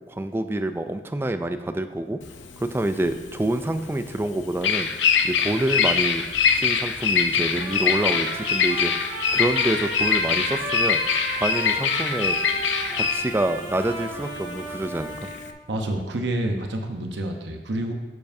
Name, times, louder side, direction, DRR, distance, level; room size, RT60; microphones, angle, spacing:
voice 1, 0.1-2.2 2.6-4.9 5.2-6.2 6.6-11.0 11.4-12.4 12.9-15.2, right 1 dB, 15° right, 9 dB, 0.3 m, -27 dB
Bird vocalization bird call bird song, 2.2-15.5, left 6 dB, 90° left, 0.6 m, -24 dB
Trumpet, 7.6-15.5, right 1 dB, 50° right, 2.3 m, -33 dB
voice 2, 15.7-17.9, right 1 dB, 75° right, 4 dB, 0.8 m, -28 dB
12.0 x 7.2 x 2.7 m, 1.3 s
head